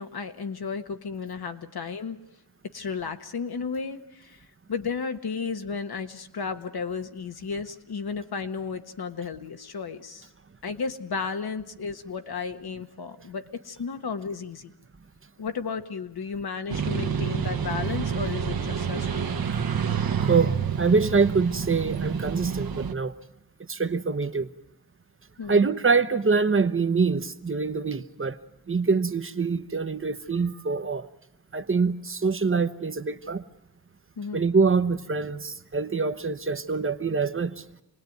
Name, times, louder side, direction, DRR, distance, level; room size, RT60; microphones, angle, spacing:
voice 1, 0.0-2.2 2.7-4.4 4.7-10.3 10.6-14.7 15.4-19.4 25.4-25.6 34.2-34.4, left 5 dB, 75° left, 1.4 m, -33 dB
sound 1, 16.7-22.9, right 7 dB, 65° right, 1.2 m, -28 dB
voice 2, 20.3-23.1 23.7-24.5 25.5-28.4 28.7-31.1 31.5-33.4 34.3-37.6, right 4 dB, 35° right, 0.9 m, -25 dB
27.0 x 19.5 x 9.3 m
wide cardioid pair, 85°, 38 cm